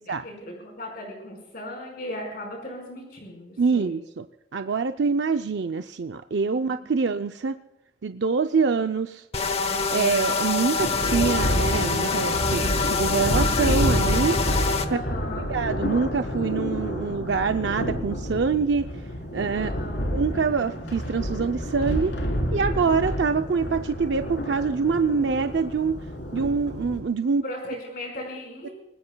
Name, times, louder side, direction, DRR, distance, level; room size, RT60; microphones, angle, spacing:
voice 1, 0.0-4.0 6.5-6.8 14.8-15.5 19.5-20.0 27.4-28.7, left 1 dB, 50° left, 1 dB, 4.9 m, -37 dB
voice 2, 3.6-4.3 4.5-7.5 8.0-9.2 9.9-14.4 14.9-15.0 15.5-18.9 19.3-19.7 20.1-22.2 22.5-26.0 26.3-27.4, right 5 dB, 65° right, 7 dB, 0.5 m, -25 dB
sound 1, 9.3-14.9, left 4 dB, 35° left, 1.1 m, -26 dB
Thunder, 10.8-27.0, equal, 70° left, 3.9 m, -29 dB
25.5 x 20.0 x 2.3 m, 0.91 s
head